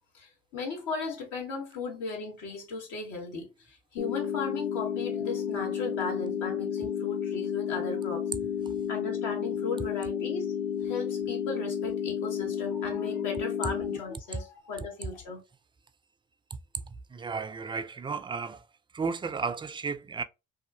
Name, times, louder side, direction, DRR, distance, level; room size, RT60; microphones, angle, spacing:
voice 1, 0.1-8.2 8.9-10.5 10.8-15.4, left 4 dB, 75° left, 1.2 m, -36 dB
sound 1, 4.0-14.0, left 8 dB, 55° left, 1.0 m, -32 dB
voice 2, 16.8-18.7 18.9-20.2, right 5 dB, 15° right, 0.3 m, -34 dB
2.7 x 2.4 x 2.6 m
hypercardioid pair, 60°, 32 cm